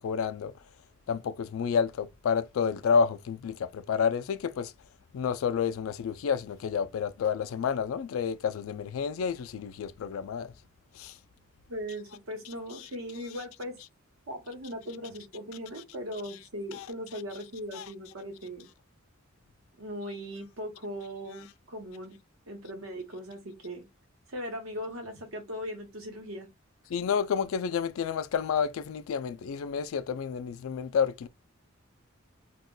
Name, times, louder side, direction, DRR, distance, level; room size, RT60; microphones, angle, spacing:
voice 1, 0.0-0.5 1.1-4.7 5.1-10.5 16.7-16.9 17.7-17.8 26.9-31.3, left 6 dB, 75° left, 0.3 m, -29 dB
voice 2, 11.7-13.8 14.3-18.7 19.8-22.2 22.5-23.9 24.3-26.5, equal, 80° right, 1.1 m, -39 dB
2.3 x 2.2 x 3.7 m
head